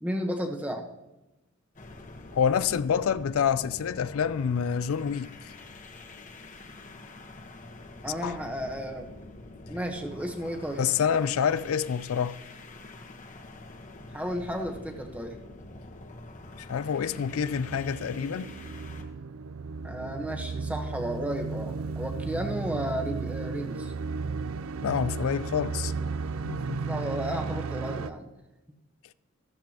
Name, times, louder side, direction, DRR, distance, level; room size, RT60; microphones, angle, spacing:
voice 1, 0.0-0.9 8.0-9.1 9.7-10.8 14.1-15.4 19.8-23.9 26.8-28.3, equal, 5° right, 1.0 m, -33 dB
sound 1, 1.7-19.1, left 2 dB, 35° left, 1.1 m, -46 dB
voice 2, 2.3-5.5 8.2-8.4 10.8-12.4 16.6-18.5 24.8-25.9 26.4-26.8, left 7 dB, 80° left, 0.4 m, -27 dB
sound 2, 17.0-28.1, right 4 dB, 80° right, 0.5 m, -34 dB
13.5 x 13.5 x 2.9 m
head